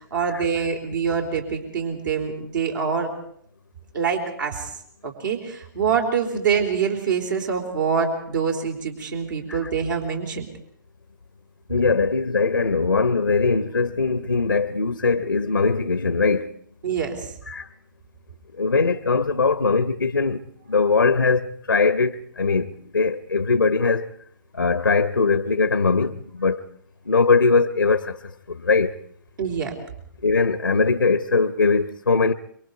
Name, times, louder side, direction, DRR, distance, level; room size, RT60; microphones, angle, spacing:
voice 1, 0.0-3.1 3.9-4.7 5.0-10.5 16.8-17.3 29.4-29.8, right 6 dB, 65° right, 3.9 m, -25 dB
voice 2, 11.7-16.5 17.5-17.7 18.5-24.1 24.5-26.6 27.1-29.0 30.2-32.3, left 4 dB, 90° left, 0.8 m, -21 dB
26.0 x 23.5 x 4.7 m
figure-of-eight pair, 120°, 11 cm